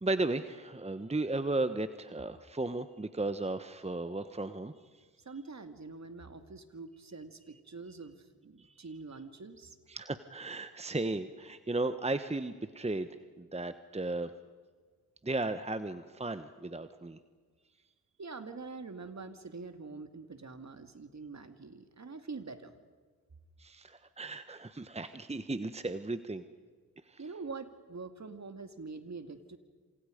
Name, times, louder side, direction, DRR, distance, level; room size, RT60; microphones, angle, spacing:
voice 1, 0.0-4.7 8.6-8.8 9.9-14.3 15.2-17.2 23.6-26.4 27.1-27.2, right 2 dB, 15° right, 11 dB, 1.2 m, -35 dB
voice 2, 5.3-9.8 18.2-22.8 27.2-29.6, right 4 dB, 45° right, 8 dB, 2.4 m, -45 dB
28.5 x 27.0 x 5.2 m, 1.5 s
supercardioid pair, 45°, 40 cm